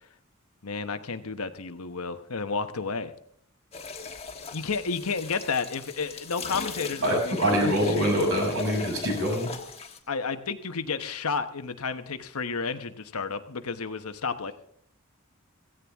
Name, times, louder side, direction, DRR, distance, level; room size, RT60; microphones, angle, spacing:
voice 1, 0.6-3.1 4.5-8.1 10.1-14.5, left 4 dB, 90° left, 9 dB, 1.0 m, -31 dB
sound 1, 3.7-10.0, left 3 dB, 30° left, 1.4 m, -37 dB
voice 2, 7.0-9.5, equal, 70° right, 1 dB, 6.9 m, -25 dB
16.5 x 15.5 x 3.6 m, 0.65 s
head